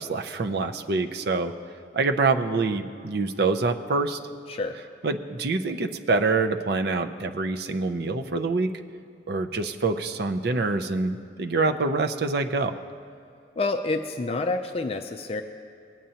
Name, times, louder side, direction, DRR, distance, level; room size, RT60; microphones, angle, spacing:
voice 1, 0.0-1.5 1.9-4.2 5.0-8.7 9.3-12.8, right 3 dB, 60° right, 5 dB, 0.5 m, -26 dB
voice 2, 4.5-4.8 13.6-15.4, left 3 dB, 30° left, 6 dB, 0.4 m, -28 dB
18.5 x 8.9 x 2.8 m, 2.6 s
head